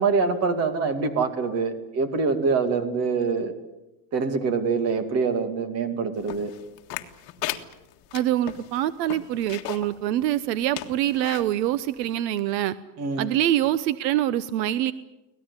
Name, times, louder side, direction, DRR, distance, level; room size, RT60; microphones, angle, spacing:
voice 1, 0.0-3.5 4.1-6.5 13.0-13.3, right 4 dB, 30° right, 9 dB, 2.5 m, -25 dB
sound 1, 6.3-9.9 10.3-10.4 10.7-11.5 12.1-12.2, left 15 dB, 45° left, 1.9 m, -35 dB
voice 2, 8.1-12.7 13.2-14.9, right 12 dB, 85° right, 15 dB, 1.1 m, -25 dB
24.5 x 18.5 x 9.8 m, 1.0 s
supercardioid pair, 170°, 49 cm